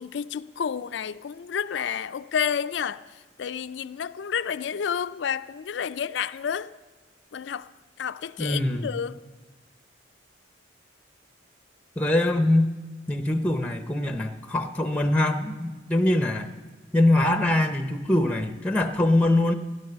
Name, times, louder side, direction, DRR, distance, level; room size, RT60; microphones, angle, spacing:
voice 1, 0.0-3.0 3.4-6.7 7.3-7.6 8.0-9.2, left 7 dB, 70° left, 0.4 m, -30 dB
voice 2, 8.4-8.9 12.0-12.7 13.1-16.5 16.9-19.5, left 1 dB, 5° left, 0.7 m, -23 dB
15.5 x 11.5 x 6.7 m
head